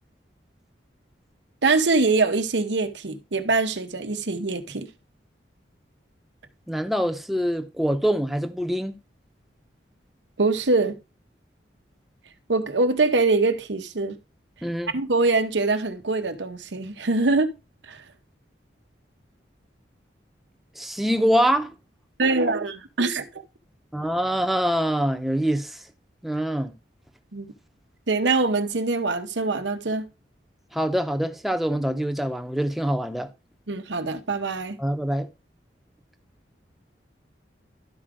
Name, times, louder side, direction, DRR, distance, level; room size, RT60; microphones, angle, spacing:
voice 1, 1.6-4.9 10.4-11.0 12.5-14.2 14.9-17.5 17.9-18.0 22.2-23.2 27.3-27.5 28.1-30.1 33.7-34.8, right 3 dB, 90° right, 1.0 m, -23 dB
voice 2, 6.7-9.0 14.6-14.9 20.8-21.8 23.9-25.8 26.2-26.7 30.7-33.3 34.8-35.3, equal, ahead, 0.7 m, -24 dB
12.0 x 4.8 x 3.6 m
head